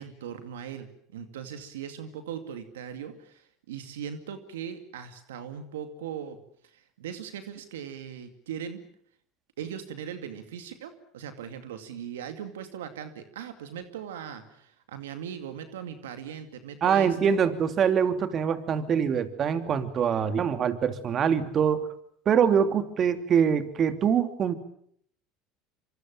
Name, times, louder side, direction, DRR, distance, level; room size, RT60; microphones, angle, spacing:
voice 1, 0.0-8.8 9.6-17.4, right 8 dB, 90° right, 8 dB, 2.3 m, -39 dB
voice 2, 16.8-21.9 22.3-24.5, right 7 dB, 40° right, 9 dB, 2.9 m, -24 dB
26.5 x 25.0 x 7.4 m, 0.64 s
hypercardioid pair, 90°, 0 cm